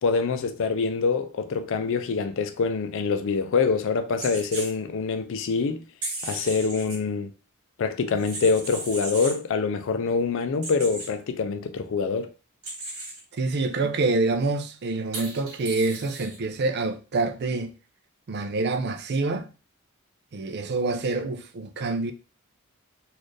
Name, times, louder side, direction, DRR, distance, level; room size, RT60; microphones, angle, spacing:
voice 1, 0.0-5.8 6.2-7.3 7.8-12.3, left 4 dB, 60° left, 0.4 m, -25 dB
sound 1, 4.2-4.7 6.0-7.0 8.1-9.4 10.6-11.1 12.6-13.2 15.1-16.4, right 2 dB, 65° right, 1.5 m, -35 dB
voice 2, 13.4-17.7 18.3-19.5 20.3-22.1, right 3 dB, 50° right, 0.4 m, -26 dB
4.1 x 2.5 x 3.2 m
head